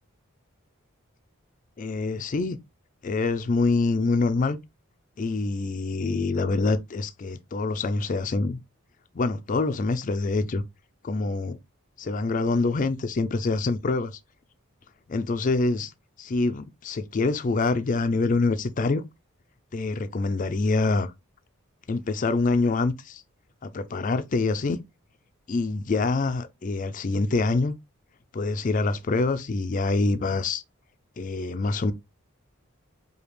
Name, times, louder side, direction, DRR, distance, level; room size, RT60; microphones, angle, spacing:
voice 1, 1.8-2.6 3.0-4.6 5.2-8.6 9.1-10.6 11.0-11.6 12.0-14.2 15.1-15.9 16.2-19.0 19.7-21.1 21.9-23.2 23.6-24.8 25.5-27.8 28.3-30.6 31.2-31.9, left 3 dB, 40° left, 0.4 m, -25 dB
5.0 x 2.4 x 3.0 m
head